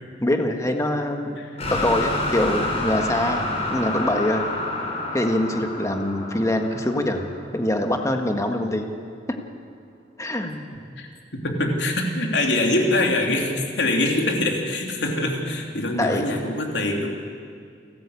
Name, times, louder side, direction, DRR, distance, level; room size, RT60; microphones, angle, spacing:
voice 1, 0.2-1.3 1.7-4.4 5.1-7.3 7.5-8.9 10.2-10.6 16.0-16.2, left 1 dB, 20° left, 4 dB, 1.7 m, -24 dB
voice 2, 1.4-1.7 10.7-17.1, left 1 dB, 75° left, 1 dB, 3.3 m, -24 dB
sound 1, 1.6-7.6, left 2 dB, 35° left, 4.6 m, -28 dB
29.5 x 13.5 x 8.5 m, 2.3 s
head